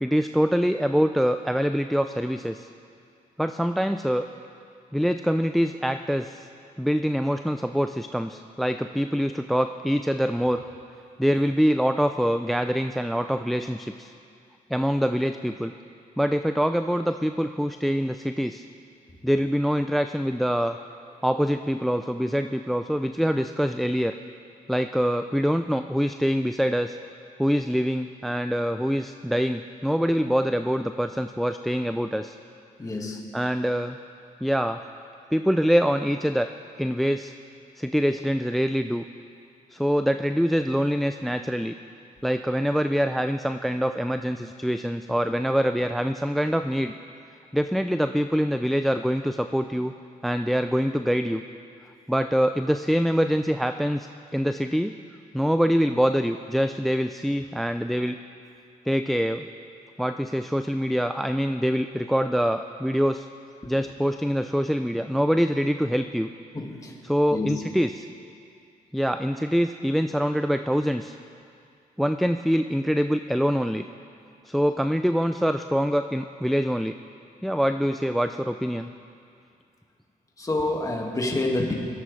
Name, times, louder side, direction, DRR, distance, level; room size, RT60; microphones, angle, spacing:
voice 1, 0.0-2.7 3.4-4.3 4.9-6.5 6.8-10.6 11.2-14.1 14.7-15.7 16.2-18.6 19.2-20.8 21.2-24.1 24.7-27.0 27.4-32.4 33.3-34.0 34.4-34.8 35.3-36.5 36.8-37.3 37.8-39.0 39.7-41.7 42.2-46.9 47.5-49.9 50.2-51.4 52.1-54.1 54.3-55.0 55.3-58.2 58.9-59.5 60.0-63.3 63.7-66.3 67.1-68.1 68.9-71.2 72.0-73.9 74.4-77.0 77.4-78.9, equal, ahead, 8 dB, 0.3 m, -24 dB
voice 2, 32.8-33.3 45.3-45.4 63.6-63.7 66.5-67.0 67.3-67.6 80.4-81.7, left 2 dB, 20° left, 1 dB, 1.8 m, -28 dB
18.0 x 13.0 x 3.2 m, 2.4 s
cardioid pair, 85°, 15 cm